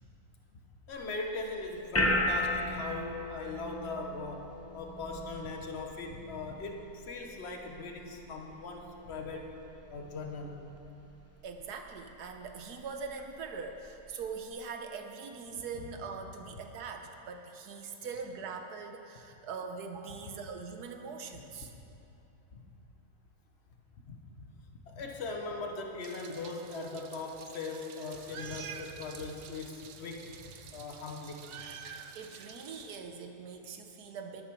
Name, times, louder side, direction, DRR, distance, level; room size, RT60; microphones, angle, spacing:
voice 1, 0.9-9.5 9.9-10.7 15.8-15.9 20.2-20.3 21.3-21.4 22.5-22.6 23.9-24.6 24.9-31.5, left 3 dB, 45° left, 2 dB, 1.3 m, -40 dB
sound 1, 1.0-14.5, left 1 dB, 15° left, 0.5 m, -38 dB
voice 2, 11.4-21.7 32.1-34.5, right 5 dB, 85° right, 5 dB, 1.5 m, -42 dB
Meow, 26.0-33.0, right 7 dB, 60° right, 0.9 m, -48 dB
12.0 x 8.6 x 6.2 m, 2.9 s
omnidirectional pair, 1.6 m